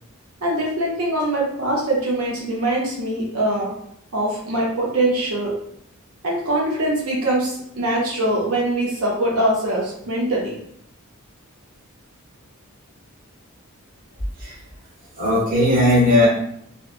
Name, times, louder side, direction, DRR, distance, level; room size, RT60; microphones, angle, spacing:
voice 1, 0.4-3.7 4.1-5.5 6.2-10.5, right 1 dB, 90° right, -3 dB, 0.6 m, -22 dB
voice 2, 15.2-16.3, left 1 dB, 40° right, -5 dB, 1.0 m, -17 dB
2.9 x 2.1 x 2.4 m, 0.71 s
head